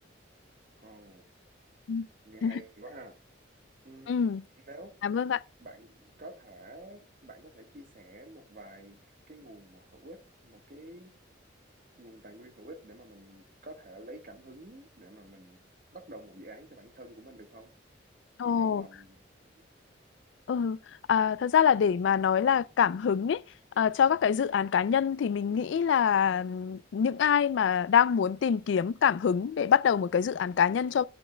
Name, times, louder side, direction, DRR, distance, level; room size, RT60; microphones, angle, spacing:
voice 1, 0.8-1.2 2.2-3.2 3.8-4.2 4.7-5.0 5.6-11.1 12.0-15.6 15.9-17.7 18.4-19.2 19.5-19.7, right 1 dB, 45° right, 1.4 m, -49 dB
voice 2, 4.1-4.4 5.0-5.4 18.4-18.9 20.5-20.8 21.1-23.4 23.8-31.0, left 7 dB, 75° left, 0.3 m, -25 dB
12.0 x 8.6 x 2.2 m
head